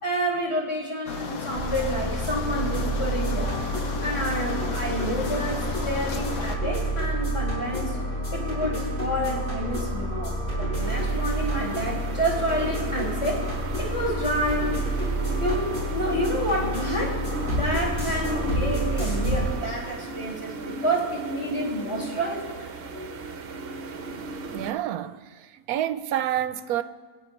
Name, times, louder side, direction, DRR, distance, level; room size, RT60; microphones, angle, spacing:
voice 1, 0.0-3.6 4.0-8.0 8.3-13.4 13.8-14.7 15.4-17.2 17.5-22.6 22.9-23.2, equal, 20° left, 2.7 m, -29 dB
sound 1, 1.1-6.6, left 3 dB, 65° left, 1.4 m, -34 dB
sound 2, 1.5-19.5, right 1 dB, 35° left, 5.4 m, -29 dB
sound 3, 10.8-24.7, right 3 dB, 50° right, 0.8 m, -36 dB
voice 2, 24.5-26.8, right 11 dB, 75° right, 1.0 m, -28 dB
25.0 x 9.7 x 3.2 m
omnidirectional pair, 1.6 m